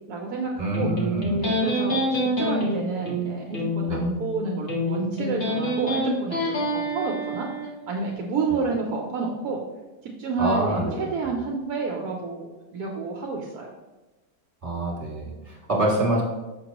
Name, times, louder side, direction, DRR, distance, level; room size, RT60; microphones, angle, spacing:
voice 1, 0.1-0.9 1.4-7.5 7.9-9.6 10.0-12.5 12.7-13.7, right 4 dB, 70° right, 0 dB, 1.1 m, -29 dB
voice 2, 0.6-1.4 3.9-4.0 8.5-8.6 10.4-11.3 14.6-16.2, right 1 dB, 20° right, -5 dB, 1.8 m, -26 dB
Electric guitar, 0.7-7.7, equal, 45° left, 1.5 m, -27 dB
5.9 x 5.9 x 2.9 m, 1.1 s
omnidirectional pair, 1.8 m